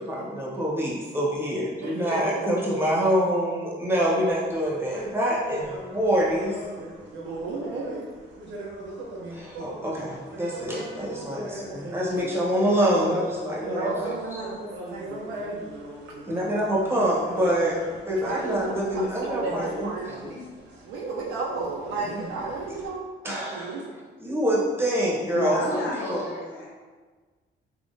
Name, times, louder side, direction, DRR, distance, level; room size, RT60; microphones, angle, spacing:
voice 1, 0.0-6.6 9.3-14.1 16.3-17.8 18.1-19.9 23.2-23.9 24.2-26.2, equal, 10° right, -5 dB, 1.1 m, -26 dB
voice 2, 1.8-2.5 7.2-8.0 13.6-15.7 18.1-20.1 20.8-23.8, right 3 dB, 90° right, -4 dB, 0.6 m, -33 dB
sound 1, 3.9-22.9, right 1 dB, 65° right, 0.9 m, -40 dB
voice 3, 25.3-26.7, left 1 dB, 85° left, -4 dB, 1.1 m, -31 dB
3.6 x 2.9 x 2.6 m, 1.4 s
cardioid pair, 90°, 20 cm